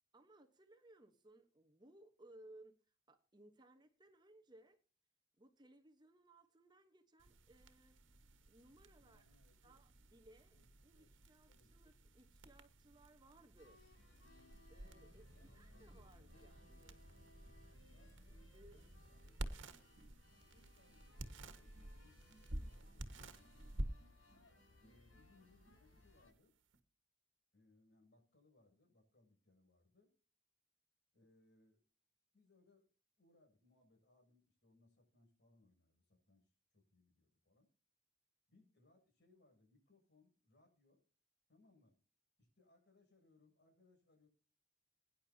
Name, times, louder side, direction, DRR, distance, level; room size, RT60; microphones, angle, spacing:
voice 1, 0.1-4.8 5.4-8.0 8.5-9.3 9.6-10.6 10.8-13.8 14.7-17.0 18.5-18.9, right 1 dB, 20° right, 5 dB, 1.1 m, -64 dB
sound 1, 7.2-26.8, right 1 dB, 70° right, 1.6 m, -52 dB
voice 2, 9.0-9.8 10.5-10.7 10.9-11.2 11.5-11.8 15.3-16.5 17.9-19.2 20.5-23.8 24.8-26.6 27.5-30.2 31.1-31.8 32.3-32.9 33.2-37.7 38.5-41.0 41.5-42.0 42.4-44.3, left 2 dB, 55° left, 3 dB, 7.2 m, -72 dB
sound 2, 13.6-26.3, left 1 dB, 85° left, 6.2 m, -67 dB
22.5 x 10.5 x 2.8 m, 0.38 s
head